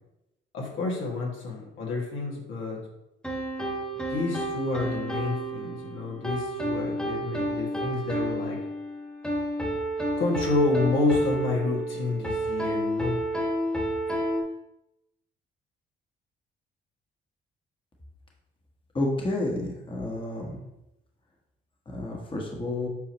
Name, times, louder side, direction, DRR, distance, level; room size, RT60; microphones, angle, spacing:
voice 1, 0.5-2.8 4.0-8.6 10.2-13.2, left 3 dB, 80° left, -3 dB, 2.1 m, -29 dB
sound 1, 3.2-14.4, right 1 dB, 5° left, 1.5 m, -30 dB
voice 2, 18.9-20.6 21.9-22.9, left 2 dB, 25° left, -1 dB, 1.4 m, -30 dB
8.1 x 4.7 x 3.1 m, 0.88 s
cardioid pair, 90°, 20 cm